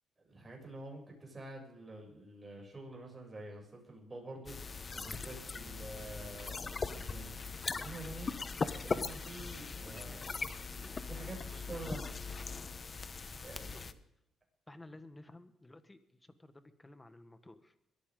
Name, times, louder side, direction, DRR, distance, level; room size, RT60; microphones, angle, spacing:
voice 1, 0.2-6.6 6.9-7.4 7.8-8.3 8.8-10.2 11.1-12.2 13.4-13.9, right 2 dB, 25° right, -1 dB, 7.3 m, -47 dB
sound 1, 4.5-13.9, left 4 dB, 35° left, 1.0 m, -40 dB
voice 2, 9.8-10.3 10.8-12.1 13.7-13.8 14.7-17.7, left 2 dB, 15° left, 10 dB, 1.5 m, -55 dB
21.5 x 14.5 x 3.9 m, 0.82 s
cardioid pair, 90°, 0 cm